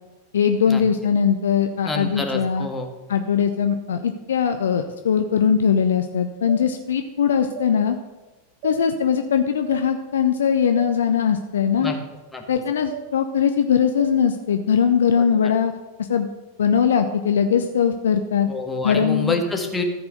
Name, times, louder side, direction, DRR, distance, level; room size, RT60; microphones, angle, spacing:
voice 1, 0.3-2.7 3.1-8.0 8.6-11.9 12.5-15.7 16.1-16.3 16.6-18.5 18.8-19.3, left 7 dB, 65° left, 7 dB, 0.6 m, -20 dB
voice 2, 1.8-2.9 11.8-12.0 12.3-12.4 15.2-15.5 18.5-19.8, left 3 dB, 10° left, 2 dB, 1.6 m, -27 dB
sound 1, 6.5-6.6 7.6-7.7 8.6-8.8 9.7-9.9 10.8-10.9 11.8-12.0 12.9-13.1 14.0-14.1, right 10 dB, 40° right, 1.2 m, -34 dB
13.5 x 4.8 x 6.4 m, 1.2 s
figure-of-eight pair, 90°, 0 cm